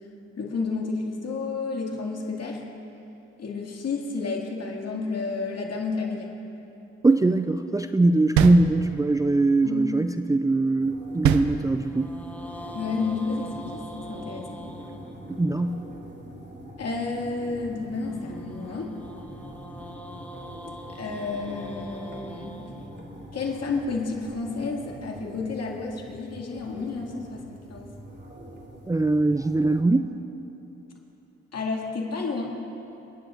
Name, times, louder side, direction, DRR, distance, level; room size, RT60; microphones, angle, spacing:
voice 1, 0.4-2.6 3.4-6.3 9.6-9.9 12.7-14.6 16.8-18.9 21.0-22.6 23.3-27.9 31.5-32.5, left 4 dB, 60° left, 0 dB, 2.2 m, -31 dB
voice 2, 7.0-12.2 15.3-15.8 28.9-30.2, right 2 dB, 10° right, 8 dB, 0.4 m, -22 dB
sound 1, 7.1-9.5 11.7-15.9 18.0-24.2, equal, 5° left, 1.1 m, -44 dB
sound 2, 8.4-9.3 11.2-12.2, right 8 dB, 85° right, 0.5 m, -25 dB
sound 3, 10.8-29.8, equal, 35° right, 2.3 m, -44 dB
29.0 x 10.0 x 2.5 m, 3.0 s
supercardioid pair, 55°, 29 cm